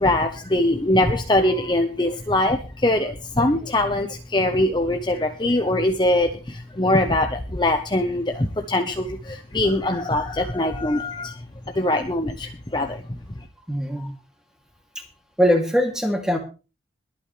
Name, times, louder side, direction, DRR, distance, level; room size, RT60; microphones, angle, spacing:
voice 1, 0.0-11.4 11.7-13.0, left 1 dB, 25° left, 5 dB, 1.0 m, -22 dB
voice 2, 13.7-14.1 15.0-15.1 15.4-16.4, equal, 5° right, 2 dB, 2.8 m, -21 dB
22.5 x 8.9 x 3.4 m, 0.33 s
head